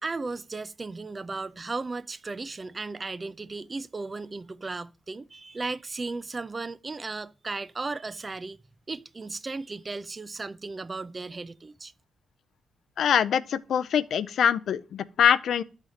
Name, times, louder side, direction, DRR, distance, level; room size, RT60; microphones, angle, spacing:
voice 1, 0.0-8.6 8.9-11.9, right 3 dB, 30° right, 0.4 m, -35 dB
voice 2, 13.0-15.6, left 8 dB, 75° left, 0.4 m, -24 dB
11.0 x 4.1 x 4.9 m
cardioid pair, 85°, 0 cm